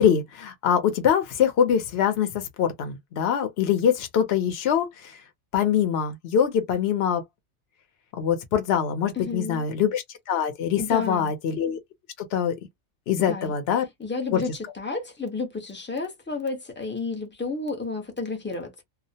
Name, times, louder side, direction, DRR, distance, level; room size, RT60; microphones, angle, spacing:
voice 1, 0.0-5.2 5.5-7.2 8.1-11.8 12.3-12.6 13.1-13.8 14.3-14.4, left 8 dB, 60° left, 0.8 m, -23 dB
voice 2, 9.1-9.7 10.8-11.3 13.3-13.5 14.0-18.8, left 4 dB, 20° left, 0.3 m, -31 dB
2.4 x 2.0 x 2.6 m
omnidirectional pair, 1.4 m